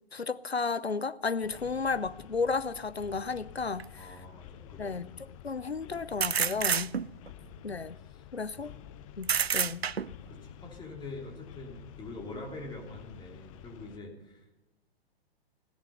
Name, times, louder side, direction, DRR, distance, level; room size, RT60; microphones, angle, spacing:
voice 1, 0.1-4.2 4.8-5.1 5.4-7.0 7.6-8.0 8.3-8.7 9.2-9.8, left 4 dB, 90° left, 0.7 m, -33 dB
sound 1, 1.4-14.0, left 10 dB, 35° left, 0.7 m, -50 dB
sound 2, 3.8-3.9 6.2-7.3 9.2-10.3, right 7 dB, 80° right, 0.5 m, -28 dB
voice 2, 4.0-5.2 7.4-8.2 8.6-8.7 10.3-14.6, left 2 dB, 15° left, 3.0 m, -45 dB
15.5 x 10.5 x 6.7 m
figure-of-eight pair, 110°, 31 cm